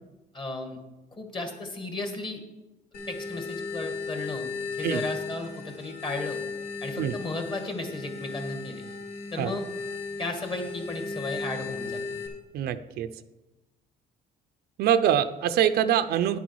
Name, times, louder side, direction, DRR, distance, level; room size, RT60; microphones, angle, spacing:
voice 1, 0.3-0.8 1.1-2.4 3.1-4.5 4.8-6.4 6.8-8.8 9.3-9.6 10.2-12.0, left 2 dB, 30° left, 4 dB, 1.9 m, -34 dB
sound 1, 2.9-12.3, left 4 dB, 80° left, 2.3 m, -36 dB
voice 2, 12.5-13.1 14.8-16.4, right 10 dB, 70° right, 10 dB, 0.6 m, -24 dB
10.5 x 8.1 x 4.7 m, 1.0 s
cardioid pair, 110°, 17 cm